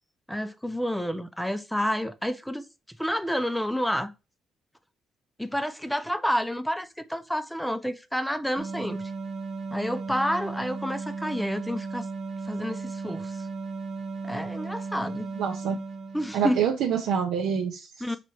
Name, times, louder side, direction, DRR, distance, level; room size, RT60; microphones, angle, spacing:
voice 1, 0.3-2.6 3.0-4.1 5.4-9.0 9.7-12.1 12.5-13.3 14.2-15.3 16.1-16.6 18.0-18.2, equal, 5° left, 0.5 m, -29 dB
sound 1, 8.6-16.7, right 4 dB, 55° right, 1.1 m, -35 dB
voice 2, 15.4-15.8 16.3-18.2, right 7 dB, 85° right, 0.6 m, -27 dB
4.9 x 2.9 x 2.9 m
cardioid pair, 90°, 0 cm